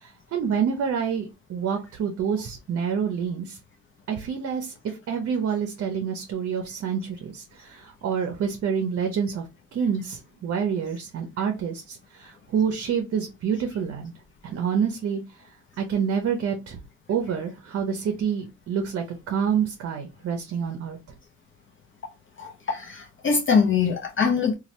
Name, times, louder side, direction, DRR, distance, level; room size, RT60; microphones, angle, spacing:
voice 1, 0.0-3.6 4.1-4.7 5.1-9.4 9.7-14.1 14.4-15.2 15.8-16.8 17.1-21.0, right 7 dB, 50° right, 0.6 m, -27 dB
voice 2, 22.4-24.5, left 5 dB, 40° left, 0.6 m, -23 dB
2.7 x 2.3 x 3.1 m
cardioid pair, 90°, 30 cm